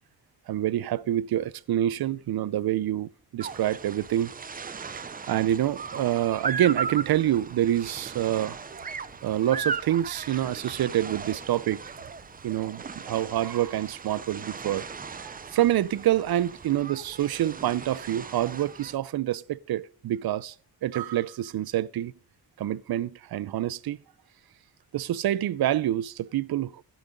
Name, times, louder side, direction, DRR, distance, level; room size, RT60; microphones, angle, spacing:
voice 1, 0.5-4.3 4.6-4.8 5.3-8.6 9.2-11.8 12.4-14.9 15.2-20.5 20.8-22.1 22.6-24.0 24.9-26.8, right 12 dB, 70° right, 0.5 m, -27 dB
sound 1, 3.4-19.0, right 5 dB, 25° right, 0.4 m, -37 dB
sound 2, 5.3-18.5, left 4 dB, 30° left, 3.1 m, -60 dB
15.5 x 6.1 x 5.1 m
wide cardioid pair, 170°, 38 cm